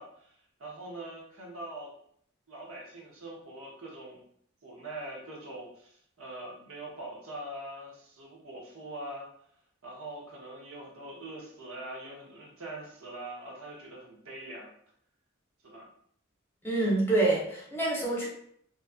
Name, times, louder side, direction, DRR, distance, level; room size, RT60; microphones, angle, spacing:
voice 1, 0.0-1.9 2.5-4.2 4.6-9.3 9.8-14.7 15.6-15.9, right 1 dB, 75° right, -2 dB, 0.8 m, -43 dB
voice 2, 16.6-18.3, right 2 dB, 10° left, -5 dB, 0.6 m, -26 dB
2.5 x 2.3 x 2.4 m, 0.66 s
head